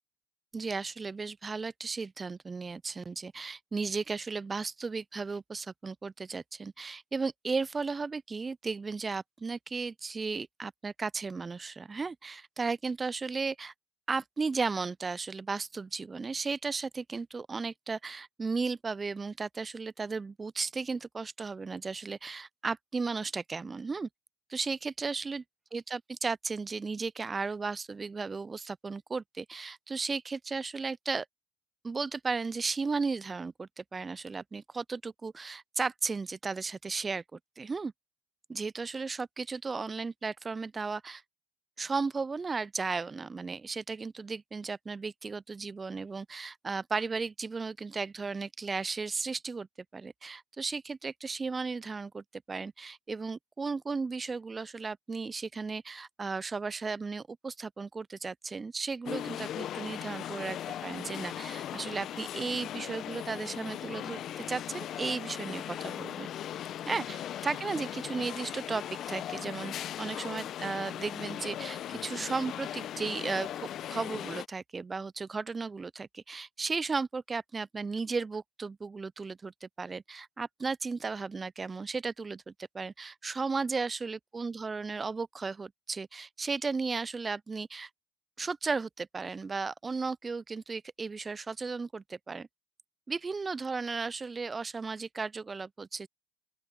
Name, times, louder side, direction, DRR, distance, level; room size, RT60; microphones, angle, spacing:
voice 1, 0.5-13.7 14.1-24.1 24.5-25.4 25.7-31.3 31.8-37.9 38.5-41.2 41.8-49.7 49.9-66.3 66.9-73.5 73.9-87.9 88.4-92.5 93.1-96.1, right 4 dB, 20° right, 0.5 m, -35 dB
sound 1, 59.1-74.5, left 11 dB, 45° left, 1.3 m, -38 dB
open air
hypercardioid pair, 75°, 0 cm